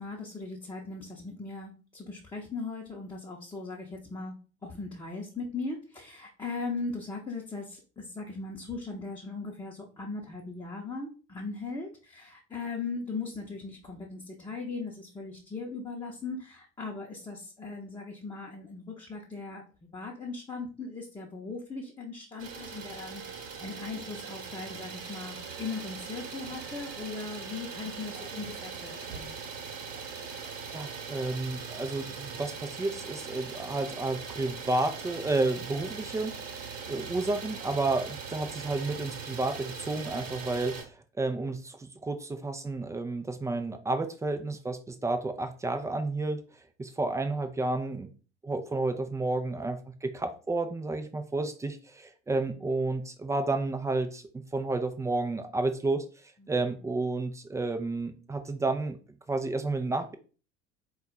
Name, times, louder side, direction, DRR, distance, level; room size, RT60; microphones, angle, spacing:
voice 1, 0.0-4.3 4.6-29.4 52.6-52.7 56.4-56.6, left 3 dB, 15° left, -3 dB, 0.8 m, -39 dB
Idling, 22.4-40.8, right 6 dB, 40° right, 1.1 m, -41 dB
voice 2, 30.7-36.4 36.9-46.4 46.8-48.1 48.4-56.0 56.5-59.0 59.3-60.1, right 2 dB, 10° right, 8 dB, 0.4 m, -31 dB
4.2 x 2.3 x 3.9 m, 0.36 s
figure-of-eight pair, 65°, 36 cm